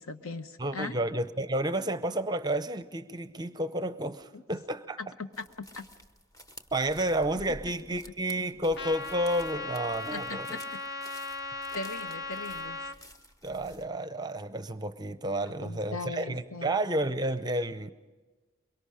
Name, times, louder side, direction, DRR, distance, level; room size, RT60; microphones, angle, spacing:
voice 1, 0.0-1.0 4.3-4.4 5.0-5.8 10.1-10.6 11.7-12.9 15.6-16.7, left 3 dB, 70° left, 9 dB, 1.0 m, -39 dB
voice 2, 0.6-5.0 6.7-10.6 13.4-17.9, right 1 dB, 20° right, 11 dB, 0.6 m, -31 dB
sound 1, 5.3-13.8, equal, 15° left, 0.9 m, -51 dB
Trumpet, 8.8-13.0, left 2 dB, 50° left, 0.8 m, -37 dB
23.5 x 23.0 x 5.0 m, 1.2 s
head